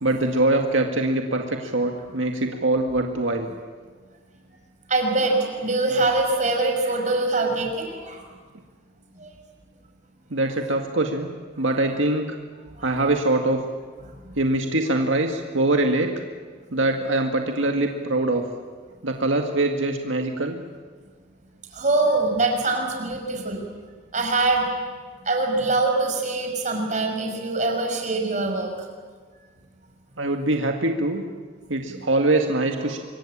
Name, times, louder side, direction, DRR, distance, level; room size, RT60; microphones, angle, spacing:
voice 1, 0.0-3.5 10.3-11.3 11.6-12.4 12.8-13.6 14.4-16.1 16.7-18.5 19.0-20.6 30.2-31.2 31.7-33.0, right 2 dB, 90° right, 3 dB, 1.9 m, -23 dB
voice 2, 4.9-8.2 9.2-9.3 12.8-12.9 21.7-23.6 24.1-24.7 25.3-28.7, right 2 dB, 40° right, 2 dB, 5.4 m, -23 dB
26.0 x 23.0 x 8.8 m, 1.5 s
head